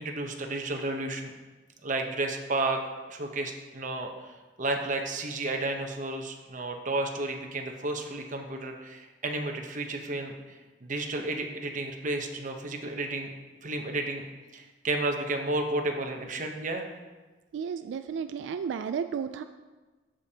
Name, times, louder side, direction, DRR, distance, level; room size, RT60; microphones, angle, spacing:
voice 1, 0.0-1.3 1.8-2.8 3.1-4.3 4.6-13.3 13.6-14.2 14.5-16.9, right 2 dB, 45° right, 3 dB, 0.8 m, -32 dB
voice 2, 17.5-19.4, right 6 dB, 90° right, 9 dB, 0.3 m, -33 dB
14.0 x 5.1 x 2.8 m, 1.3 s
head